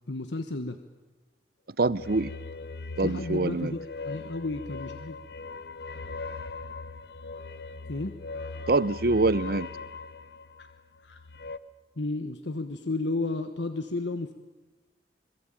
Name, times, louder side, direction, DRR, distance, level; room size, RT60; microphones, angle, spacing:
voice 1, 0.1-0.8 3.0-5.2 7.9-8.1 10.6-10.7 11.0-11.2 12.0-14.3, left 2 dB, 90° left, 1.3 m, -32 dB
sound 1, 1.8-11.6, left 3 dB, 65° left, 1.1 m, -40 dB
voice 2, 1.8-2.3 3.0-3.7 8.7-9.7, right 3 dB, 60° right, 0.7 m, -25 dB
26.5 x 20.5 x 9.0 m
head